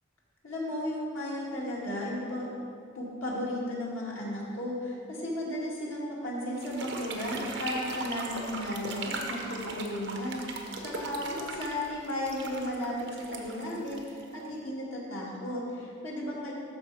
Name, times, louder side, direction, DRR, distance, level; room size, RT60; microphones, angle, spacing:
voice 1, 0.4-2.5 2.9-16.5, left 1 dB, 90° left, -5 dB, 2.2 m, -34 dB
sound 1, 6.6-14.6, right 3 dB, 60° right, 1.0 m, -39 dB
12.5 x 4.8 x 4.8 m, 2.5 s
head